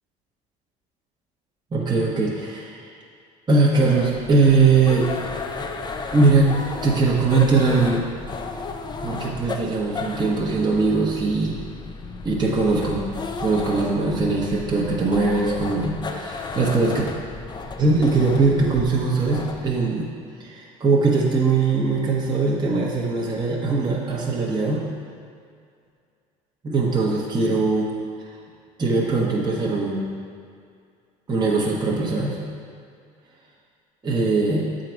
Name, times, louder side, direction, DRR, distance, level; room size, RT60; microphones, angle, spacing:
voice 1, 1.7-2.9 3.5-5.1 6.1-6.5 6.8-8.1 9.0-11.6 12.2-13.0 13.4-17.0 17.8-20.1 20.4-24.8 26.6-27.9 28.8-30.1 31.3-32.4 34.0-34.7, right 3 dB, 25° right, -4 dB, 1.1 m, -21 dB
sound 1, 3.8-19.7, left 3 dB, 25° left, 0.5 m, -34 dB
8.1 x 3.9 x 4.5 m, 2.3 s
supercardioid pair, 85°, 18 cm